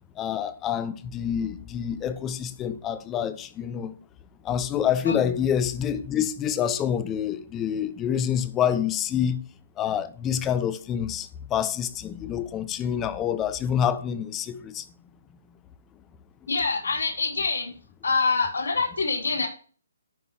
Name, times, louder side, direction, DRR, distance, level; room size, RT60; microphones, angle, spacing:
voice 1, 0.2-3.9 4.4-9.4 9.8-14.8, left 9 dB, 15° left, 0.8 m, -27 dB
voice 2, 16.5-17.7 18.0-19.5, left 4 dB, 85° left, 5.1 m, -25 dB
13.5 x 5.4 x 2.8 m
hypercardioid pair, 155°, 0 cm